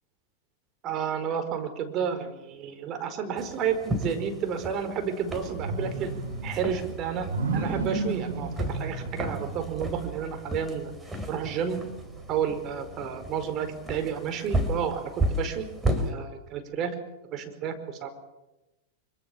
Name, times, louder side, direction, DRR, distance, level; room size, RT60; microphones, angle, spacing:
voice 1, 0.8-6.1 6.4-10.9 11.3-11.8 12.3-15.7 16.0-17.0 17.3-18.1, right 7 dB, 40° right, 8 dB, 4.8 m, -31 dB
sound 1, 3.4-16.1, right 1 dB, 10° right, 4.5 m, -34 dB
sound 2, 5.4-10.4 11.0-11.1 11.5-13.2, right 3 dB, 90° right, 5.1 m, -33 dB
24.5 x 24.0 x 7.2 m, 1.0 s
hypercardioid pair, 105°, 0 cm